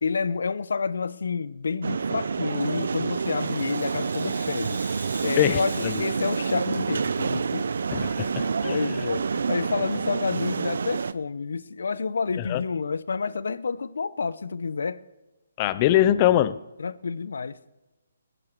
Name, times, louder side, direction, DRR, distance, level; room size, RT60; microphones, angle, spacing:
voice 1, 0.0-4.8 5.2-7.7 8.6-15.0 16.8-17.6, left 5 dB, 75° left, 0.6 m, -29 dB
sound 1, 1.8-11.1, right 5 dB, 65° right, 0.5 m, -28 dB
Rattle (instrument), 2.4-7.9, right 3 dB, 85° right, 3.5 m, -42 dB
voice 2, 5.4-6.0 7.9-8.8 12.4-12.6 15.6-16.6, left 13 dB, 25° left, 0.5 m, -23 dB
18.5 x 10.0 x 4.5 m
hypercardioid pair, 160°, 0 cm